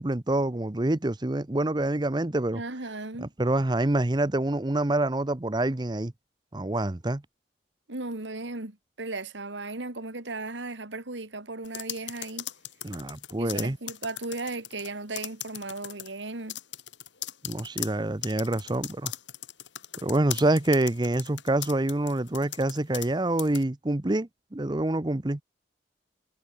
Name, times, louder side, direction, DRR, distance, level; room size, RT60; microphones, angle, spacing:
voice 1, 0.0-2.6 3.2-6.1 6.5-7.2 12.8-13.8 17.4-19.1 20.0-25.4, right 1 dB, 25° right, 0.8 m, -26 dB
voice 2, 2.5-3.3 7.9-12.5 13.4-16.6, right 2 dB, 85° right, 2.6 m, -36 dB
sound 1, 11.6-14.9 15.1-16.1 16.5-23.1 23.4-23.6, left 13 dB, 90° left, 5.3 m, -38 dB
head